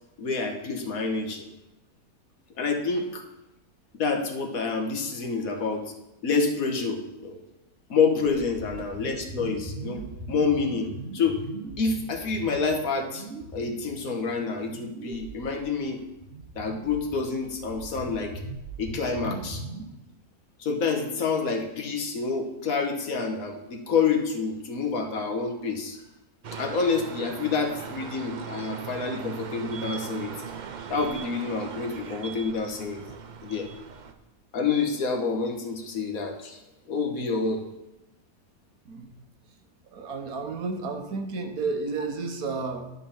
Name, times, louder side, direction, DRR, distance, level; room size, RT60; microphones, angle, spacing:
voice 1, 0.2-1.4 2.6-3.2 3.9-5.8 6.2-7.4 7.9-10.0 10.3-11.4 11.8-13.3 13.5-16.0 16.5-18.3 18.8-19.6 20.6-26.0 26.5-30.3 30.9-33.0 33.4-33.7 34.5-36.6 36.9-37.6, left 4 dB, 65° left, 3 dB, 1.5 m, -28 dB
sound 1, 8.2-19.8, right 2 dB, 45° right, 1.2 m, -40 dB
sound 2, 26.4-34.1, right 6 dB, 90° right, 0.4 m, -39 dB
voice 2, 39.9-42.9, right 4 dB, 70° right, 3 dB, 1.6 m, -32 dB
11.5 x 4.1 x 7.0 m, 0.93 s
omnidirectional pair, 1.6 m